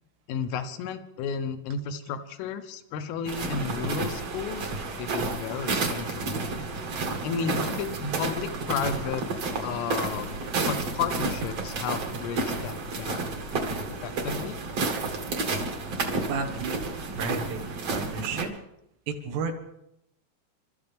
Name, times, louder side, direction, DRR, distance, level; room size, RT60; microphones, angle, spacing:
voice 1, 0.3-4.7 5.0-6.3 7.2-9.3 9.6-13.2 14.0-14.6, left 6 dB, 85° left, 9 dB, 3.5 m, -33 dB
sound 1, 3.3-18.4, right 3 dB, 50° right, 1.9 m, -31 dB
voice 2, 16.3-16.7 17.2-17.6 17.9-18.5 19.1-19.5, right 5 dB, 85° right, 3 dB, 4.1 m, -31 dB
29.0 x 13.0 x 3.5 m, 0.79 s
omnidirectional pair, 5.6 m